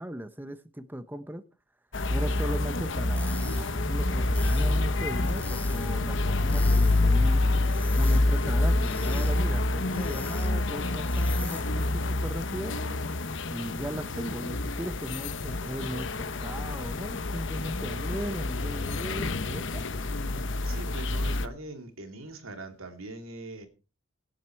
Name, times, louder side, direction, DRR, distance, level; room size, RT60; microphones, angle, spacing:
voice 1, 0.0-1.4 2.1-12.8 13.5-19.8, right 1 dB, 10° right, 0.7 m, -38 dB
sound 1, 1.9-21.5, left 2 dB, 60° left, 1.0 m, -27 dB
sound 2, 3.2-11.9, left 2 dB, 10° left, 2.0 m, -45 dB
voice 2, 20.6-23.7, right 2 dB, 85° right, 2.6 m, -42 dB
17.5 x 7.5 x 4.6 m
head